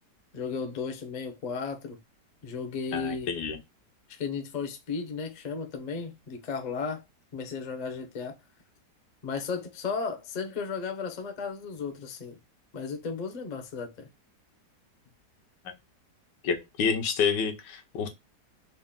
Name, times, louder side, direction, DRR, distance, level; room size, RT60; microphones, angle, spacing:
voice 1, 0.3-2.0 2.4-3.3 4.1-7.0 7.3-8.4 9.2-12.4 12.7-14.1, left 5 dB, 50° left, 0.5 m, -34 dB
voice 2, 2.9-3.6 16.4-18.1, left 6 dB, 80° left, 1.4 m, -28 dB
4.1 x 2.2 x 3.6 m
omnidirectional pair, 1.9 m